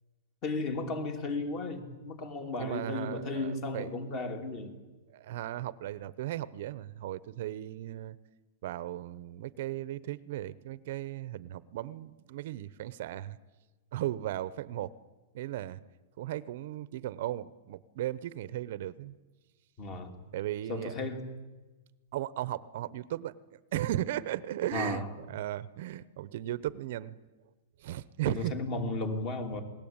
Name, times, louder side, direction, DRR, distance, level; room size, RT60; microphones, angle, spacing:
voice 1, 0.4-4.7 19.8-20.2 20.7-21.2 24.7-25.1 28.3-29.6, left 3 dB, 30° left, 7 dB, 2.8 m, -34 dB
voice 2, 2.6-3.9 5.1-8.2 8.6-13.4 13.9-14.9 15.3-15.8 16.2-19.2 20.3-21.0 22.1-23.3 23.7-27.2 27.8-28.5, right 13 dB, 50° right, 17 dB, 0.8 m, -36 dB
28.0 x 20.0 x 8.9 m, 1.2 s
supercardioid pair, 165°, 0 cm